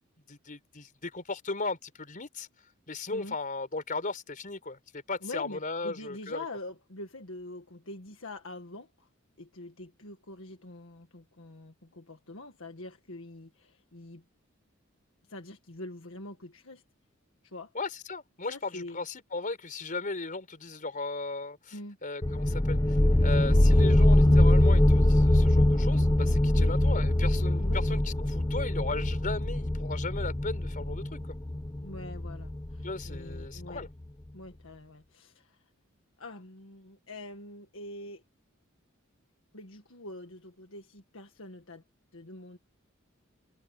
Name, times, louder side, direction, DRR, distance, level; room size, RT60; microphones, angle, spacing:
voice 1, 0.3-2.5 2.9-6.4 17.7-31.2 32.8-33.9, left 3 dB, 40° left, 4.6 m, -37 dB
voice 2, 5.2-9.1 9.4-14.2 15.3-16.8 17.4-17.7 18.5-19.0 21.7-22.0 23.4-23.6 26.6-26.7 27.6-27.8 31.8-33.9 34.3-35.6 36.2-38.2 39.5-41.8 42.1-42.6, left 2 dB, 70° left, 1.8 m, -44 dB
sound 1, 22.2-33.6, left 1 dB, 20° left, 0.7 m, -23 dB
head